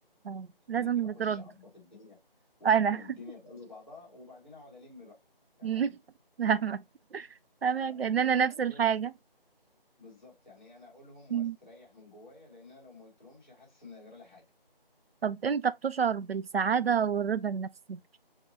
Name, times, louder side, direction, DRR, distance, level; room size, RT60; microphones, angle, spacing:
voice 1, 0.2-1.4 2.6-3.0 5.6-5.9 6.4-6.8 7.1-7.3 7.6-9.1 11.3-11.6 15.2-18.0, right 7 dB, 85° right, 0.5 m, -28 dB
voice 2, 0.8-5.2 5.6-5.9 7.7-8.9 10.0-14.4, left 3 dB, 10° left, 2.6 m, -51 dB
6.5 x 3.0 x 2.5 m
figure-of-eight pair, 180°, 30 cm